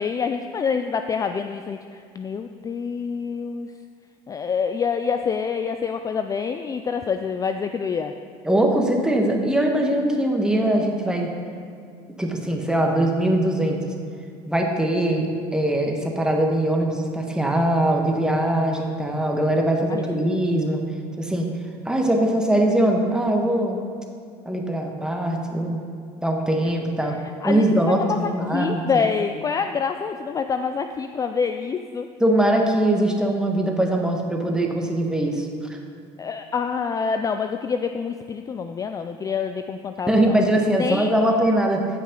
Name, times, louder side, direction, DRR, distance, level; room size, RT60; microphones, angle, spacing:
voice 1, 0.0-3.7 4.3-8.1 19.9-20.2 27.4-32.1 35.3-35.4 36.2-40.4 40.8-41.1, left 6 dB, 25° left, 7 dB, 0.4 m, -26 dB
voice 2, 8.4-11.3 12.2-13.8 14.5-20.8 21.2-21.5 21.8-23.8 24.4-25.8 26.2-27.2 27.4-29.0 32.2-35.8 40.1-41.8, right 1 dB, 5° right, 1 dB, 1.4 m, -21 dB
15.0 x 5.4 x 3.8 m, 2.3 s
supercardioid pair, 100°, 13 cm